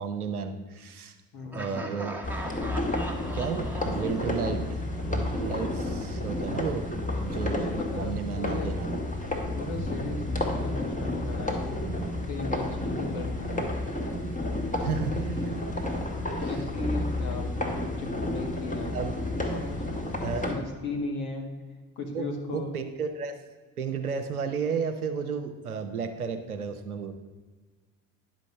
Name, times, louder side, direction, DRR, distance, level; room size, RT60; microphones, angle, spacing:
voice 1, 0.0-1.2 1.5-2.2 3.3-7.7 7.9-8.9 11.8-12.1 12.8-13.0 14.8-15.6 16.4-16.6 18.9-19.2 20.2-20.5 22.1-23.4 23.8-27.1, right 6 dB, 90° right, 7 dB, 0.8 m, -33 dB
voice 2, 1.3-1.9 7.5-8.8 9.5-11.8 12.2-13.6 14.2-15.6 16.4-19.0 19.4-20.2 20.4-21.5 22.0-22.7, left 2 dB, 60° left, 2 dB, 2.1 m, -37 dB
Laughter, 1.5-5.4, right 1 dB, 5° right, 1.4 m, -40 dB
sound 1, 2.2-20.6, left 1 dB, 20° left, 1.9 m, -31 dB
10.5 x 5.2 x 6.5 m, 1.4 s
figure-of-eight pair, 50°, 43 cm